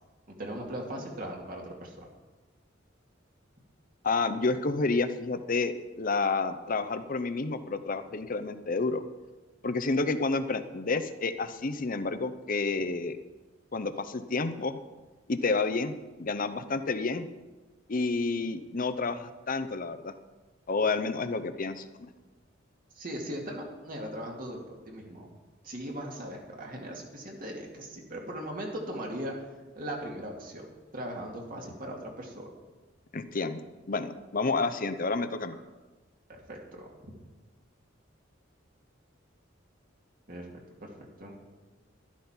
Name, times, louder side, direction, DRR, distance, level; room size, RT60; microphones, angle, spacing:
voice 1, 0.4-2.1 22.9-25.3 25.6-29.4 29.7-30.7 30.9-32.5 36.3-36.9 40.3-40.5 40.8-41.4, equal, 50° right, 0 dB, 2.3 m, -39 dB
voice 2, 4.0-9.0 9.6-13.2 13.7-14.8 15.3-17.3 17.9-20.1 20.7-22.1 33.1-33.6 33.9-35.6, left 3 dB, 45° left, 10 dB, 0.7 m, -30 dB
12.0 x 11.5 x 4.4 m, 1.2 s
head